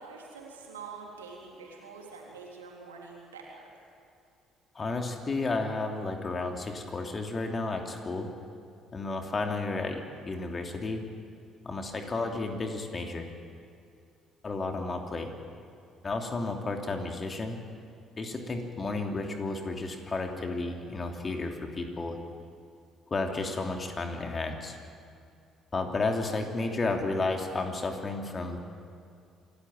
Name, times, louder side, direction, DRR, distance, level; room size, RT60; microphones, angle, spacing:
voice 1, 0.0-3.9, right 4 dB, 80° right, -1 dB, 3.7 m, -46 dB
voice 2, 4.7-8.3 8.9-11.1 11.6-13.3 14.4-15.3 16.0-17.6 18.2-22.2 23.1-24.8 25.7-28.6, left 3 dB, 30° left, 3 dB, 2.9 m, -32 dB
27.0 x 14.0 x 8.9 m, 2.4 s
figure-of-eight pair, 50°, 0 cm